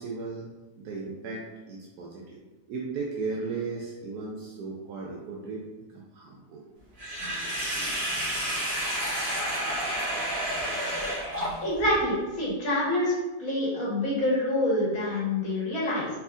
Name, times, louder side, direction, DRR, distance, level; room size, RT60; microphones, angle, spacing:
voice 1, 0.0-2.4 2.7-6.7, right 4 dB, 80° right, -3 dB, 1.2 m, -36 dB
Sink (filling or washing), 7.0-11.9, equal, 40° right, 1.7 m, -30 dB
voice 2, 11.6-13.1 13.4-16.1, left 1 dB, 60° left, -5 dB, 1.8 m, -26 dB
4.5 x 4.2 x 2.5 m, 1.1 s
omnidirectional pair, 1.7 m